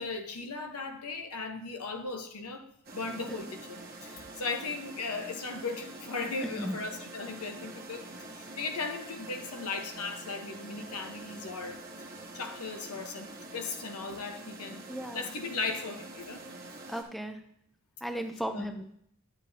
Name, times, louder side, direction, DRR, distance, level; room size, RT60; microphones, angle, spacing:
voice 1, 0.0-2.7 2.9-8.0 8.4-11.8 12.3-14.8 15.1-16.4 18.5-18.6, left 4 dB, 85° left, 4 dB, 1.0 m, -37 dB
sound 1, 2.8-17.0, right 2 dB, 45° right, 1.2 m, -46 dB
voice 2, 6.4-6.8 14.9-15.3 16.9-17.4 18.0-19.0, equal, ahead, 6 dB, 0.5 m, -36 dB
9.9 x 7.3 x 2.7 m, 0.68 s
head